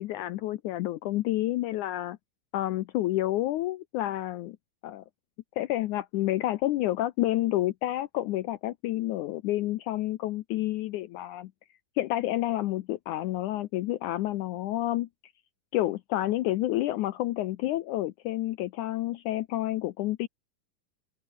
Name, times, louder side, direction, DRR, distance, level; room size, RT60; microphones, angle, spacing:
voice 1, 0.0-2.2 2.5-4.6 4.8-5.0 5.6-11.5 12.0-15.1 15.7-20.3, left 15 dB, 75° left, 2.0 m, -29 dB
omnidirectional pair, 4.0 m